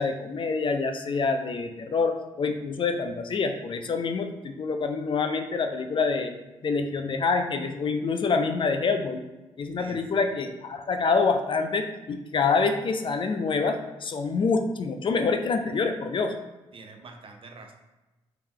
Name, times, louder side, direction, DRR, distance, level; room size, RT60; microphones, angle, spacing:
voice 1, 0.0-6.3 6.6-9.2 9.6-16.3, left 4 dB, 45° left, 6 dB, 0.4 m, -26 dB
voice 2, 9.8-10.3 16.7-17.7, right 3 dB, 50° right, 3 dB, 0.7 m, -46 dB
3.0 x 2.9 x 3.6 m, 1.1 s
supercardioid pair, 60°, 12 cm